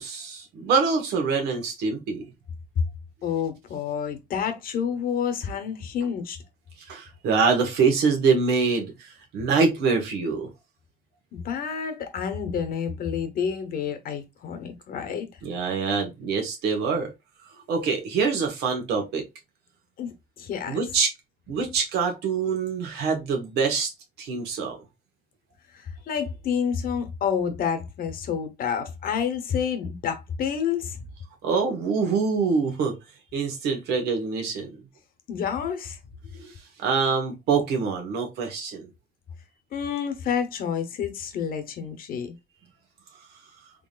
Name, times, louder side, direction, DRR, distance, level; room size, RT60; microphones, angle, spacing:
voice 1, 0.0-2.2 6.9-10.5 15.4-17.1 17.7-19.2 20.7-21.1 21.5-23.9 24.2-24.8 31.4-33.0 33.3-34.7 36.4-36.5 36.8-38.9, right 5 dB, 80° right, 1.4 m, -25 dB
voice 2, 3.2-6.4 11.3-15.3 20.0-20.8 25.7-31.0 35.3-36.0 39.7-42.3, left 7 dB, 60° left, 1.0 m, -29 dB
3.8 x 3.5 x 2.4 m
cardioid pair, 110°, 17 cm